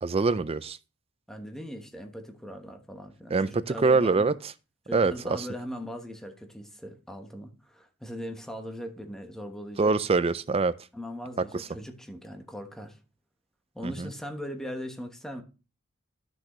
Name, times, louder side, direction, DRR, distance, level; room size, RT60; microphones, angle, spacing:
voice 1, 0.0-0.8 3.3-4.3 4.9-5.4 9.8-10.7 11.5-11.7 13.8-14.1, right 4 dB, 25° right, 0.4 m, -24 dB
voice 2, 1.3-4.3 4.9-9.9 10.9-13.0 13.7-15.4, equal, ahead, 1.1 m, -39 dB
12.0 x 6.2 x 3.1 m
head